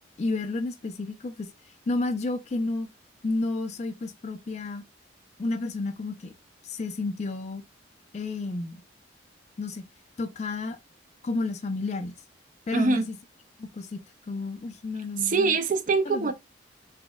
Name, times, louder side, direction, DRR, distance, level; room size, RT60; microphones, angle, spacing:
voice 1, 0.2-1.5 1.9-2.9 3.2-4.8 5.4-6.3 6.6-7.6 8.1-8.8 9.6-9.8 10.2-10.8 11.2-12.1 12.7-13.2 13.6-14.0 14.3-15.6 16.1-16.3, left 3 dB, 35° left, 0.3 m, -31 dB
voice 2, 12.7-13.1 15.2-16.3, right 4 dB, 40° right, 0.4 m, -24 dB
4.0 x 2.0 x 2.2 m
head